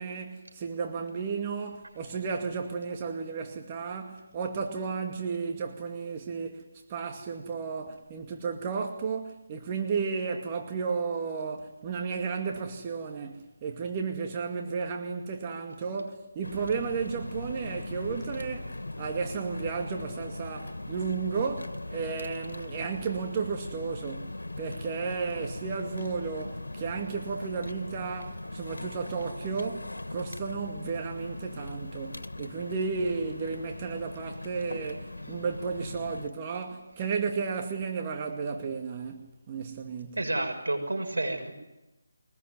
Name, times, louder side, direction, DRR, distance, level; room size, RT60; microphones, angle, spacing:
voice 1, 0.0-40.2, right 5 dB, 25° right, 2.2 m, -33 dB
sound 1, 16.4-36.3, left 2 dB, 85° left, 2.2 m, -40 dB
voice 2, 40.2-41.5, right 2 dB, 85° right, 6.8 m, -30 dB
23.0 x 20.5 x 9.6 m
figure-of-eight pair, 160°, 0 cm